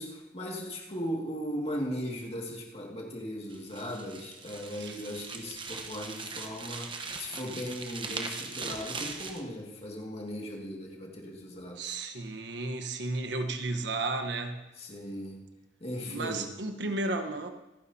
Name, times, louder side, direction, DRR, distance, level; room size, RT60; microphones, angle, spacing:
voice 1, 0.0-12.0 14.8-15.4 15.8-16.5, equal, 35° left, -1 dB, 2.1 m, -38 dB
sound 1, 3.5-9.4, right 4 dB, 25° right, 1.0 m, -40 dB
voice 2, 11.8-14.7 16.1-17.5, right 2 dB, 70° right, 7 dB, 1.2 m, -33 dB
26.0 x 9.7 x 2.8 m, 1.0 s
head